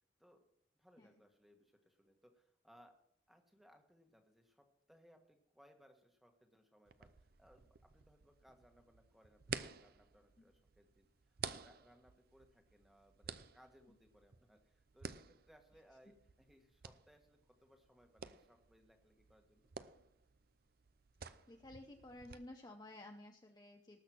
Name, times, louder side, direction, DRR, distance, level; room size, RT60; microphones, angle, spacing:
voice 1, 0.8-3.0 3.3-19.7, equal, ahead, 4 dB, 1.4 m, -67 dB
sound 1, 6.9-22.4, right 6 dB, 50° right, 0.6 m, -52 dB
voice 2, 21.5-24.0, left 1 dB, 20° left, 3 dB, 0.7 m, -54 dB
19.0 x 6.4 x 6.1 m, 0.72 s
head